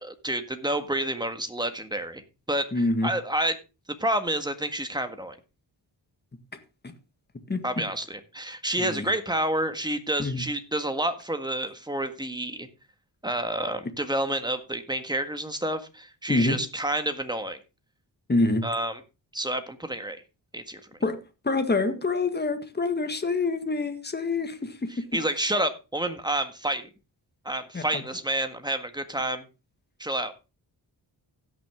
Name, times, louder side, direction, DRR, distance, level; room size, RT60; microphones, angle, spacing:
voice 1, 0.0-2.2 2.5-3.6 4.0-5.4 7.6-12.7 13.2-17.6 18.6-19.0 19.3-20.2 20.5-20.8 24.9-26.9 27.4-29.5 30.0-30.3, right 1 dB, 10° right, 1.6 m, -29 dB
voice 2, 2.7-3.1 6.8-6.9 7.5-7.6 8.8-9.1 10.2-10.4 16.3-16.6 18.3-18.6 21.0-25.0 27.7-28.0, left 3 dB, 25° left, 1.7 m, -26 dB
16.5 x 6.1 x 3.6 m
cardioid pair, 80°, 42 cm